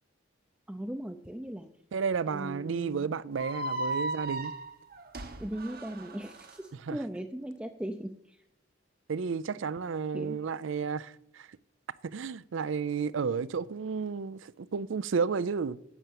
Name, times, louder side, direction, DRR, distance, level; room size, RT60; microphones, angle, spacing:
voice 1, 0.7-1.7 2.3-3.1 5.4-8.4 10.1-10.4, right 1 dB, 5° right, 0.5 m, -38 dB
voice 2, 1.9-4.5 6.9-7.0 9.1-11.5 12.0-15.9, right 5 dB, 70° right, 0.4 m, -32 dB
sound 1, 3.3-6.5, right 2 dB, 50° right, 1.0 m, -36 dB
10.5 x 6.7 x 7.7 m
head